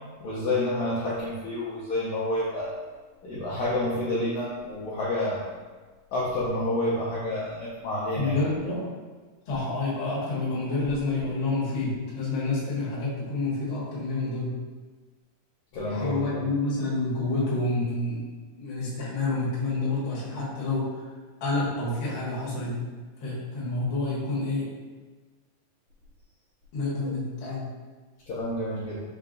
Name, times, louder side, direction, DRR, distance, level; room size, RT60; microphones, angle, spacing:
voice 1, 0.2-2.7 3.2-5.4 6.1-8.4 15.7-16.4 28.3-29.0, left 1 dB, 75° left, -8 dB, 1.8 m, -29 dB
voice 2, 8.1-8.8 9.5-14.5 15.9-18.2 18.6-21.1 21.4-22.8 23.2-24.7 26.7-27.7, left 2 dB, 55° left, -7 dB, 1.5 m, -28 dB
5.5 x 2.3 x 3.7 m, 1.4 s
omnidirectional pair, 4.0 m